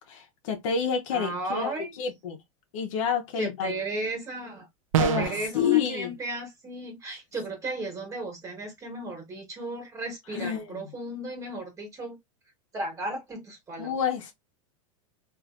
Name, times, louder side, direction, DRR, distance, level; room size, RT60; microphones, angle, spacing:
voice 1, 0.1-2.4 2.7-3.7 5.0-6.1 10.3-10.9 13.8-14.3, left 7 dB, 70° left, 1.0 m, -28 dB
voice 2, 1.1-1.9 3.4-4.7 4.9-12.2 12.7-13.9, right 2 dB, 20° right, 1.5 m, -35 dB
sound 1, 4.9-5.5, right 9 dB, 75° right, 0.6 m, -25 dB
3.3 x 2.7 x 2.4 m
supercardioid pair, 140°, 17 cm